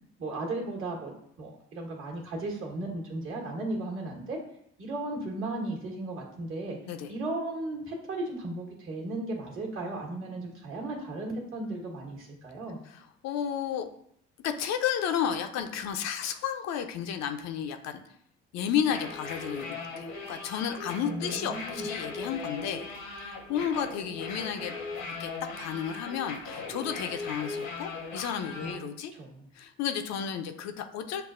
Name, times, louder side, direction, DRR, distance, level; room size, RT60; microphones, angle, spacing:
voice 1, 0.2-4.4 4.8-6.8 7.1-12.8 21.0-21.9 28.6-29.5, right 2 dB, 40° right, -2 dB, 1.3 m, -36 dB
voice 2, 12.9-13.9 14.4-18.0 18.5-22.9 23.2-24.7 25.2-25.3 25.6-29.1 29.6-31.3, left 8 dB, 55° left, 7 dB, 0.6 m, -32 dB
sound 1, 18.8-28.8, left 3 dB, 80° left, 0.9 m, -39 dB
6.6 x 2.3 x 2.5 m, 0.71 s
hypercardioid pair, 60°, 31 cm